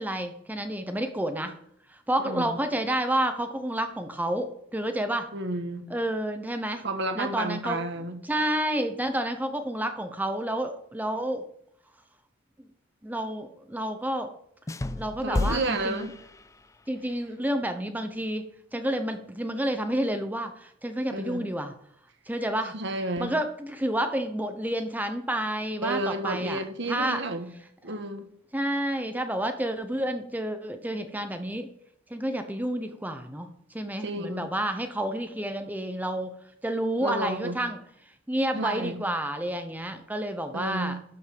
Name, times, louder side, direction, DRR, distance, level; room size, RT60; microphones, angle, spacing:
voice 1, 0.0-1.5 2.1-5.3 5.9-6.8 7.1-7.8 8.2-11.4 13.0-14.3 15.0-16.1 16.9-18.4 18.7-21.7 22.3-22.7 23.2-26.6 26.9-27.2 28.5-31.7 32.1-33.5 33.7-36.3 36.6-37.8 38.3-41.0, right 1 dB, 10° right, 0.8 m, -29 dB
voice 2, 2.2-2.6 5.3-5.9 6.8-8.2 15.2-16.2 21.1-21.5 22.7-23.3 25.8-27.5 27.8-28.3 34.0-34.5 37.0-37.6 38.5-39.0 40.5-41.0, right 2 dB, 65° right, 1.4 m, -31 dB
sound 1, 14.7-16.9, left 2 dB, 15° left, 0.4 m, -32 dB
12.5 x 5.3 x 5.2 m
head